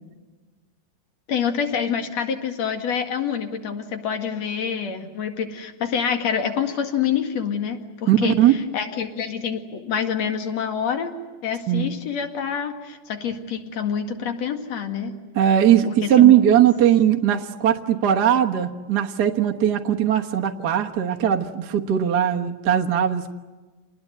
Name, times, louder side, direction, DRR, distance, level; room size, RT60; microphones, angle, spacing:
voice 1, 1.3-11.1 11.4-15.1 15.9-16.3, left 7 dB, 60° left, 6 dB, 3.1 m, -27 dB
voice 2, 8.1-8.5 11.7-11.9 15.3-23.3, right 10 dB, 55° right, 2 dB, 1.1 m, -19 dB
28.5 x 20.0 x 9.4 m, 1.3 s
omnidirectional pair, 3.6 m